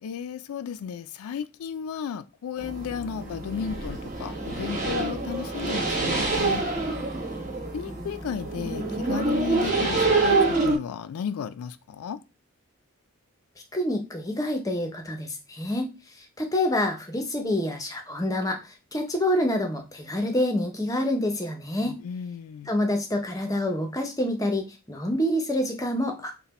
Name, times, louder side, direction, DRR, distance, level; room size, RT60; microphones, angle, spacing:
voice 1, 0.0-6.6 7.7-12.2 21.8-22.7, left 7 dB, 80° left, 0.3 m, -34 dB
sound 1, 2.6-10.7, right 3 dB, 35° right, 1.0 m, -26 dB
voice 2, 13.7-15.9 16.4-18.6 18.9-22.0 22.7-26.3, left 1 dB, 15° left, 0.6 m, -27 dB
4.0 x 2.1 x 4.1 m
head